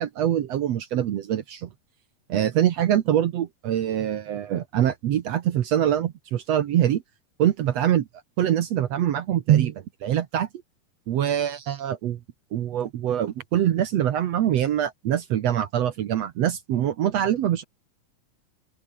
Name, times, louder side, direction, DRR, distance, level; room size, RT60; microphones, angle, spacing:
voice 1, 0.0-1.7 2.3-7.0 7.4-8.1 8.4-10.5 11.1-12.2 12.5-17.6, right 11 dB, 65° right, 1.8 m, -24 dB
open air
omnidirectional pair, 4.1 m